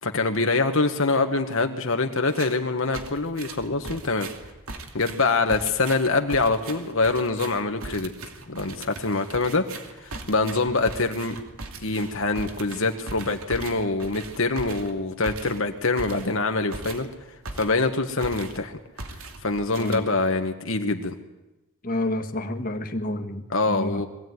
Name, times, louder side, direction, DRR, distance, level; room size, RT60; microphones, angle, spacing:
voice 1, 0.0-4.3 4.9-8.1 8.5-9.6 10.0-11.4 11.8-17.1 17.6-18.7 19.4-21.2 23.5-24.1, left 3 dB, 60° left, 5 dB, 1.5 m, -24 dB
sound 1, 2.3-2.6 2.9-17.9 18.2-18.7 19.0-20.4, right 2 dB, 70° right, 2.7 m, -39 dB
voice 2, 21.8-24.0, left 1 dB, 40° left, 5 dB, 1.7 m, -29 dB
23.0 x 16.5 x 9.6 m, 1.0 s
head